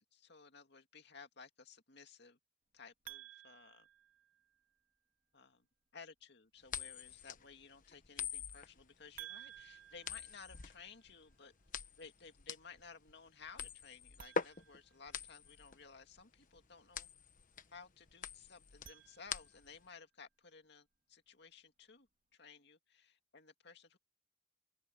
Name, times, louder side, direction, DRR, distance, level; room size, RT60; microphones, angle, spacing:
voice 1, 0.1-2.4 2.7-3.9 5.3-5.7 5.9-11.5 12.0-17.1 17.7-24.0, left 5 dB, 65° left, 2.3 m, -57 dB
sound 1, 3.1-4.8 9.2-11.2 14.1-15.7 18.6-19.8, right 12 dB, 45° right, 3.4 m, -56 dB
sound 2, 6.7-19.9, left 6 dB, 45° left, 1.2 m, -45 dB
open air
head